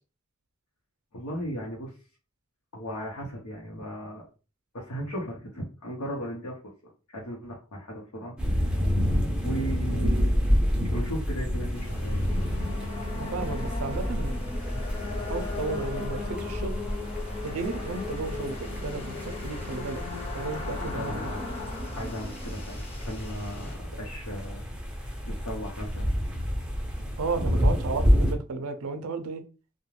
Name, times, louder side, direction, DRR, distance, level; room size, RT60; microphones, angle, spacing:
voice 1, 1.1-1.9 2.7-4.3 4.7-6.7 7.1-8.8 9.4-10.3 10.9-12.4 20.9-21.4 22.0-24.6 24.9-26.1, equal, 85° left, 0.8 m, -37 dB
sound 1, 8.4-28.3, equal, 5° right, 0.5 m, -29 dB
sound 2, 11.7-23.8, left 4 dB, 25° left, 0.8 m, -38 dB
voice 2, 13.1-14.3 15.3-16.7 17.4-20.0 20.3-21.3 27.2-29.4, right 4 dB, 70° right, 0.5 m, -33 dB
2.4 x 2.2 x 3.1 m
head